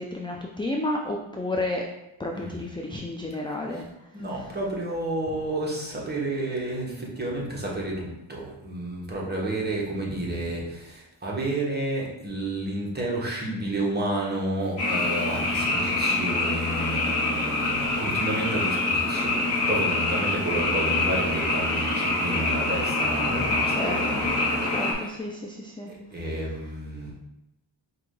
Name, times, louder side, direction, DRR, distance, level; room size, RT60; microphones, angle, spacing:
voice 1, 0.0-1.8 2.2-4.5 10.2-10.3 15.3-15.4 17.7-18.0 23.3-24.2 24.6-26.5, left 1 dB, 10° left, 1 dB, 0.3 m, -33 dB
voice 2, 4.1-25.1 25.9-27.1, right 1 dB, 20° right, -4 dB, 1.4 m, -31 dB
Frog, 14.8-24.9, left 2 dB, 60° left, 1.4 m, -25 dB
4.6 x 2.7 x 3.9 m, 0.91 s
cardioid pair, 65°, 47 cm